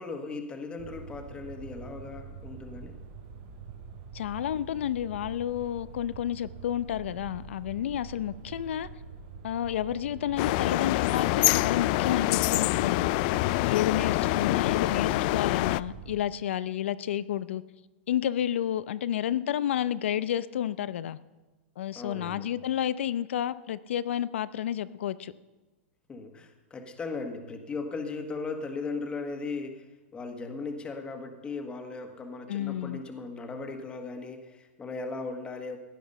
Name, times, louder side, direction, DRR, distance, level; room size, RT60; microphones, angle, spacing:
voice 1, 0.0-3.0 21.9-22.5 26.1-29.9 30.1-35.8, left 4 dB, 15° left, 1.5 m, -37 dB
sound 1, 0.8-16.2, right 6 dB, 50° right, 4.0 m, -45 dB
voice 2, 4.1-8.9 9.4-13.1 13.6-17.6 18.1-21.2 21.8-25.3 32.5-33.0, left 10 dB, 75° left, 0.6 m, -30 dB
sound 2, 10.4-15.8, left 19 dB, 45° left, 0.3 m, -25 dB
16.0 x 10.5 x 5.5 m
hypercardioid pair, 140°, 6 cm